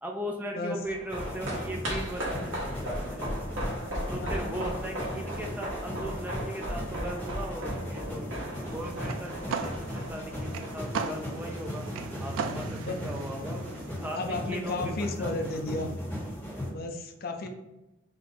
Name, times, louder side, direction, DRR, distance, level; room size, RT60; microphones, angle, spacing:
voice 1, 0.0-3.3 4.1-8.2 8.6-11.9 12.2-13.6 14.0-15.3, equal, 10° right, 1 dB, 0.4 m, -38 dB
sound 1, 0.8-11.4 11.6-11.7, equal, 70° right, 1.4 m, -36 dB
sound 2, 1.1-16.7, equal, 10° left, 1.1 m, -37 dB
voice 2, 4.2-4.6 12.8-13.0 14.1-15.9 16.7-17.5, left 2 dB, 50° left, 5 dB, 0.5 m, -33 dB
sound 3, 8.6-14.1, right 4 dB, 90° right, 0.4 m, -38 dB
4.0 x 2.7 x 4.1 m, 1.0 s
head